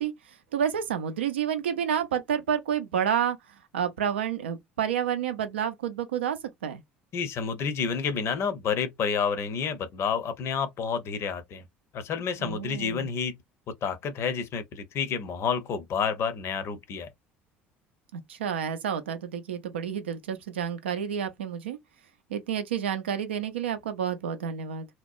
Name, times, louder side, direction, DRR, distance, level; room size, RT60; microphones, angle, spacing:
voice 1, 0.0-3.4 3.7-6.8 12.4-13.1 18.1-21.8 22.3-24.9, right 8 dB, 80° right, 0.4 m, -30 dB
voice 2, 7.1-11.6 11.9-13.3 13.8-17.1, left 6 dB, 45° left, 0.6 m, -29 dB
2.8 x 2.0 x 2.4 m
figure-of-eight pair, 65°, 6 cm